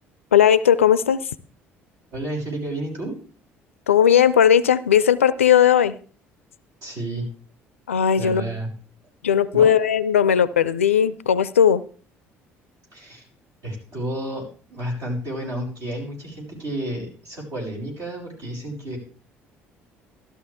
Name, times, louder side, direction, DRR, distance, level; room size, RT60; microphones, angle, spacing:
voice 1, 0.3-1.2 3.9-5.9 7.9-8.5 9.2-11.8, left 9 dB, 85° left, 18 dB, 0.4 m, -17 dB
voice 2, 2.1-3.2 6.8-7.3 8.2-8.7 9.5-9.7 12.9-13.2 13.6-19.0, right 1 dB, 60° right, -2 dB, 6.4 m, -31 dB
13.5 x 12.5 x 3.5 m, 0.40 s
figure-of-eight pair, 55°, 7 cm